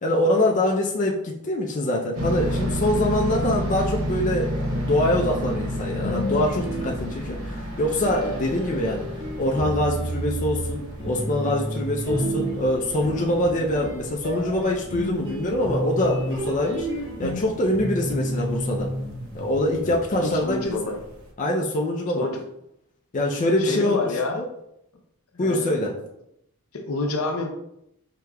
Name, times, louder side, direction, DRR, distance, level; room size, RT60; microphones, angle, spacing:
voice 1, 0.0-9.0 9.4-16.9 17.2-18.9 19.3-20.9 21.4-22.3 23.1-24.0 24.4-24.5 25.4-25.9, left 1 dB, 35° left, -1 dB, 0.4 m, -24 dB
sound 1, 2.1-21.3, equal, 70° right, 0.8 m, -32 dB
sound 2, 6.0-7.5 8.0-20.2, equal, 20° right, 1.5 m, -31 dB
voice 2, 20.2-21.0 22.1-22.4 23.6-24.4 25.3-26.0 26.7-27.5, left 2 dB, 75° left, 3 dB, 0.7 m, -28 dB
4.8 x 2.9 x 2.3 m, 0.78 s
head